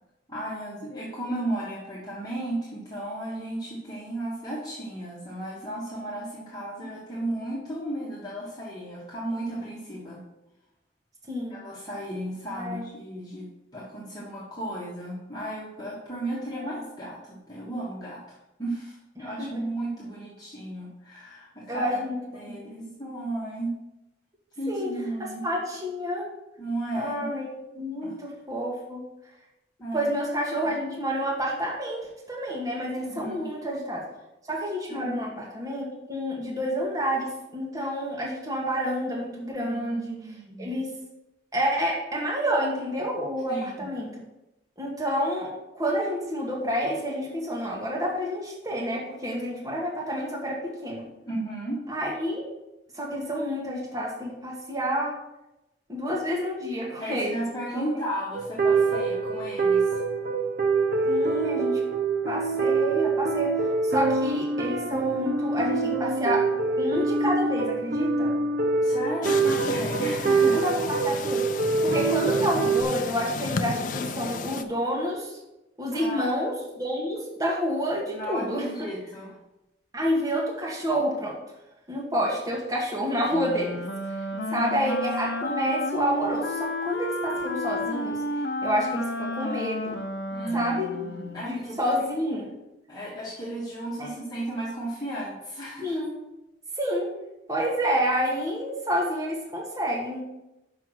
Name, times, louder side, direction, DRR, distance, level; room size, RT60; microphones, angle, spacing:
voice 1, 0.3-10.2 11.5-22.0 22.3-23.7 24.6-25.4 26.6-27.3 28.0-28.1 29.8-30.1 33.2-33.5 34.9-35.2 39.6-40.7 43.5-43.9 51.3-51.8 57.0-60.0 68.8-70.6 75.9-76.3 78.1-79.3 84.3-85.0 90.3-91.8 92.9-96.0, right 1 dB, 20° left, -7 dB, 1.6 m, -34 dB
voice 2, 19.2-19.5 21.7-22.9 24.7-24.9 25.4-26.3 26.9-29.0 29.9-34.0 34.5-40.2 40.6-40.9 41.5-44.2 44.8-51.0 51.9-52.4 52.9-55.1 55.9-57.4 57.7-57.9 61.0-61.8 62.3-63.5 63.8-66.4 66.8-68.3 70.4-71.4 71.8-75.4 75.8-78.6 79.9-81.3 81.9-83.8 84.5-88.2 88.6-90.0 90.5-90.9 91.4-92.5 94.0-94.2 95.8-96.1 96.8-97.1 97.5-100.2, equal, 20° right, -3 dB, 1.5 m, -29 dB
sound 1, 58.4-72.8, right 4 dB, 55° right, 0.8 m, -25 dB
sound 2, 69.2-74.6, left 4 dB, 45° left, 0.4 m, -33 dB
Wind instrument woodwind instrument, 83.3-91.5, left 2 dB, 80° left, 0.7 m, -31 dB
6.0 x 5.8 x 6.4 m, 0.94 s
head